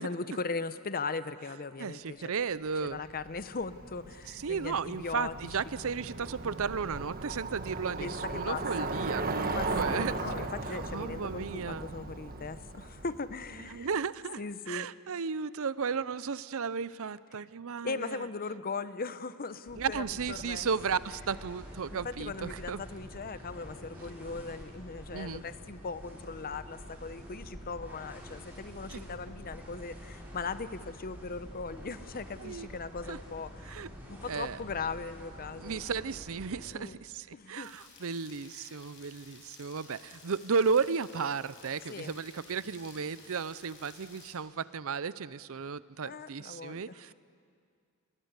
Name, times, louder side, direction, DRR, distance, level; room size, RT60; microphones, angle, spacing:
voice 1, 0.0-2.3 2.9-5.3 8.0-8.9 9.5-13.9 14.4-14.9 17.8-20.7 21.9-33.8 34.1-35.8 36.7-37.0 37.3-37.7 41.9-42.1 46.0-47.1, left 4 dB, 40° left, 13 dB, 0.8 m, -39 dB
voice 2, 1.8-3.0 4.3-11.9 13.6-18.3 19.8-22.8 25.1-25.4 28.9-29.0 32.4-32.7 33.1-33.2 33.6-33.9 34.3-34.6 35.5-47.1, right 5 dB, 65° right, 17 dB, 0.6 m, -34 dB
Bicycle, 2.9-13.8, right 3 dB, 40° right, 1.6 m, -37 dB
sound 1, 19.7-36.7, equal, 10° right, 6.4 m, -47 dB
Rain, 37.6-44.3, left 4 dB, 60° left, 6.3 m, -54 dB
28.5 x 21.0 x 8.2 m, 2.2 s
head